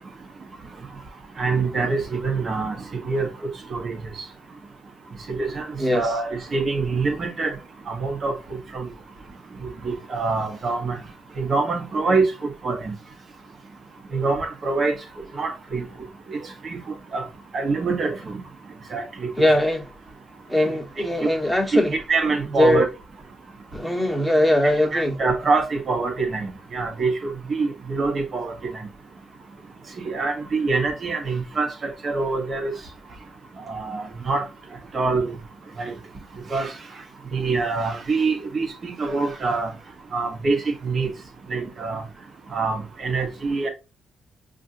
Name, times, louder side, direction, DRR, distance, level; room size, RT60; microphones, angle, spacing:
voice 1, 1.4-4.0 5.3-5.7 5.9-7.5 7.9-8.3 8.7-8.9 9.8-11.0 11.4-12.9 14.1-14.9 15.4-15.8 16.3-16.8 17.1-17.2 17.5-18.4 18.9-19.3 21.7-22.9 24.9-28.8 30.0-32.7 33.7-34.4 34.9-35.3 35.8-35.9 36.5-36.7 37.3-39.7 40.1-41.1 41.5-42.0 42.5-43.7, right 4 dB, 45° right, 1.2 m, -25 dB
voice 2, 5.8-6.1 19.4-19.9 20.5-22.0 22.5-22.8 23.7-25.2, left 1 dB, 5° right, 1.2 m, -21 dB
5.3 x 2.5 x 2.6 m
cardioid pair, 85°, 0 cm